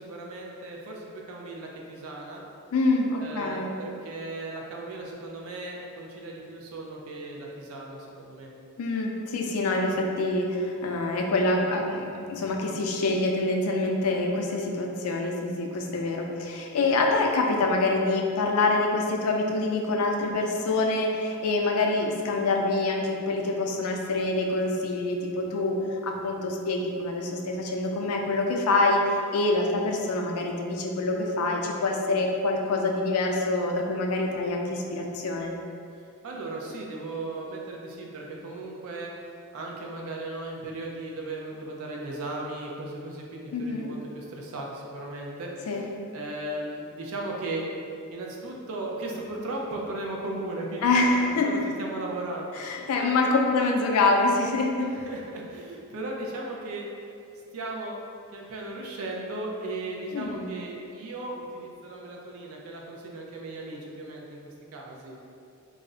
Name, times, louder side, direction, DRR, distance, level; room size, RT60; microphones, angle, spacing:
voice 1, 0.0-2.4 3.2-8.5 36.2-39.1 39.5-45.8 46.1-47.7 48.1-51.0 51.3-52.6 53.0-53.3 54.8-57.1 57.5-58.0 58.3-65.2, right 2 dB, 70° right, -1 dB, 0.4 m, -36 dB
voice 2, 2.7-3.7 8.8-35.5 43.5-43.9 45.7-45.8 50.8-51.6 52.6-54.9 60.1-60.5, left 2 dB, 75° left, 1 dB, 0.4 m, -26 dB
2.4 x 2.0 x 3.6 m, 2.5 s
head